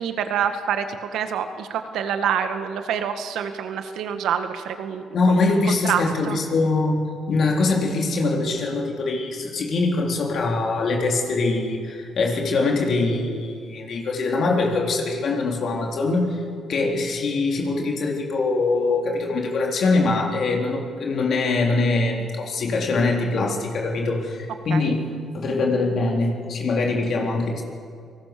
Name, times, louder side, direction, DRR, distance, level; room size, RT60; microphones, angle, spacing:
voice 1, 0.0-6.4 24.7-25.0, right 8 dB, 80° right, 8 dB, 1.8 m, -27 dB
voice 2, 5.1-7.0 7.3-16.4 16.7-25.0 25.3-27.6, left 3 dB, 60° left, 0 dB, 3.9 m, -23 dB
29.0 x 19.0 x 7.0 m, 2.3 s
cardioid pair, 90°, 0 cm